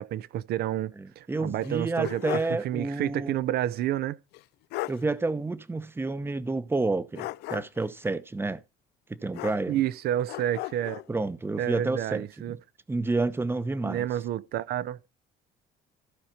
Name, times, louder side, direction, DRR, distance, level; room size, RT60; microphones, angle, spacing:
voice 1, 0.0-4.2 9.7-11.0 11.6-12.6 13.8-15.0, right 12 dB, 70° right, 0.6 m, -30 dB
voice 2, 1.0-3.4 4.9-8.6 9.1-9.8 11.1-12.6 12.9-14.0, right 3 dB, 15° right, 0.8 m, -29 dB
sound 1, 1.6-2.6 3.0-3.1 4.3-4.4 4.7-5.0 7.1-7.9 9.3-9.9 10.3-11.1, left 18 dB, 80° left, 0.4 m, -36 dB
14.5 x 4.9 x 4.4 m
cardioid pair, 110°, 17 cm